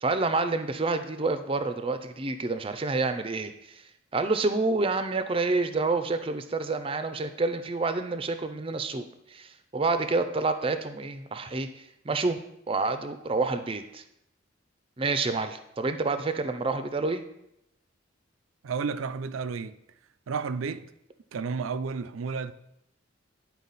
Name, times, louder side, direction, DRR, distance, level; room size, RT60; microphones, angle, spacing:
voice 1, 0.0-3.8 4.1-9.0 9.3-11.7 12.0-12.4 12.7-14.0 15.0-17.2, right 3 dB, 30° right, 0.5 m, -28 dB
voice 2, 18.6-19.8 20.3-20.9 21.3-22.5, right 5 dB, 90° right, 0.4 m, -32 dB
10.0 x 4.4 x 4.1 m
head